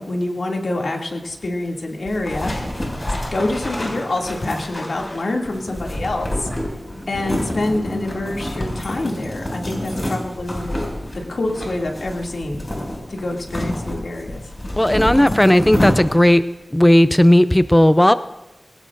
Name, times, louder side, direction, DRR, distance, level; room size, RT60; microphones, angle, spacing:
voice 1, 0.0-2.5 3.3-6.5 7.1-10.8 11.3-12.6 13.1-14.4, left 2 dB, 85° left, 0 dB, 2.5 m, -26 dB
sound 1, 2.1-16.4, left 1 dB, 35° left, 6.2 m, -28 dB
voice 2, 14.8-16.4 16.7-18.1, left 1 dB, 15° left, 12 dB, 0.5 m, -14 dB
21.0 x 17.5 x 2.6 m, 1.0 s
wide cardioid pair, 75°, 0 cm